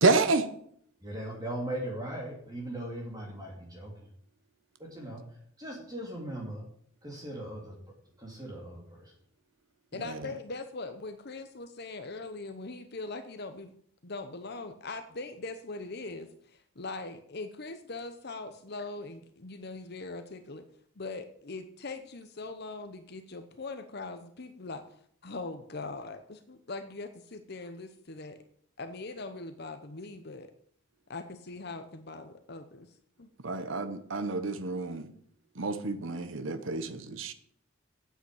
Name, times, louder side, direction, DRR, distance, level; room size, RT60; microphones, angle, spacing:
voice 1, 0.0-0.5 10.0-10.3 33.4-35.1 35.5-37.3, right 3 dB, 65° right, 1.0 m, -29 dB
voice 2, 1.0-4.1 4.8-6.6 7.0-7.8 8.2-9.1 10.2-10.3, right 1 dB, 20° right, 2.7 m, -39 dB
voice 3, 9.9-13.7 14.0-20.7 21.0-24.8 25.2-28.4 28.8-30.5 31.1-33.3, left 3 dB, 50° left, 0.9 m, -41 dB
9.0 x 8.0 x 8.3 m
head